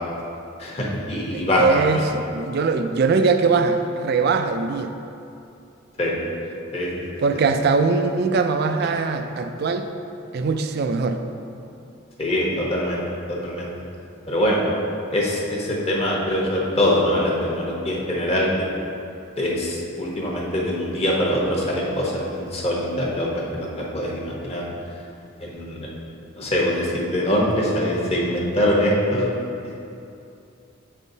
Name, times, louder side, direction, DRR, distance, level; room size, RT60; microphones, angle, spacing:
voice 1, 0.6-1.7 1.9-2.0 6.0-6.2 6.7-7.2 12.2-13.0 13.3-13.7 14.3-14.6 15.1-18.7 19.4-24.6 25.4-25.9 26.3-29.3, left 1 dB, 30° left, -3 dB, 0.9 m, -23 dB
voice 2, 1.3-4.9 7.2-9.9 10.3-11.2, right 4 dB, 50° right, 7 dB, 0.3 m, -21 dB
8.1 x 5.5 x 2.7 m, 2.7 s
head